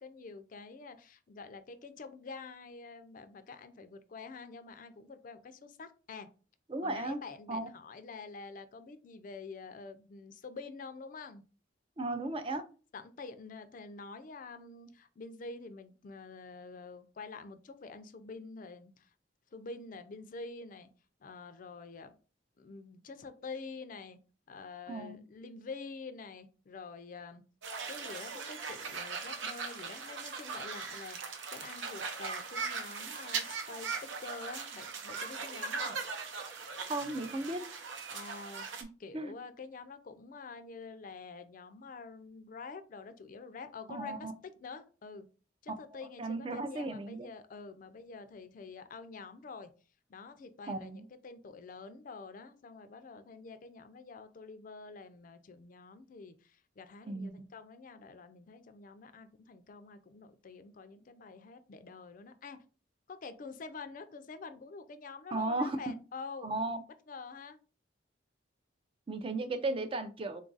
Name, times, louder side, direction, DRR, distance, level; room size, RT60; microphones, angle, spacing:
voice 1, 0.0-6.3 6.8-11.4 12.9-19.1 19.5-20.9 21.2-22.1 22.6-24.2 24.5-27.4 27.9-36.0 38.1-45.3 45.6-49.7 50.1-62.6 63.1-66.6 67.1-67.6, left 4 dB, 45° left, 0.4 m, -47 dB
voice 2, 6.7-7.2 7.5-7.7 12.0-12.6 24.9-25.2 36.9-37.6 39.1-39.3 43.9-44.3 46.2-47.3 50.7-51.0 57.1-57.5 65.3-65.9 66.4-66.8 69.1-70.4, right 2 dB, 30° right, 0.4 m, -35 dB
sound 1, 27.6-38.8, right 5 dB, 80° right, 0.7 m, -39 dB
3.8 x 2.4 x 3.9 m
head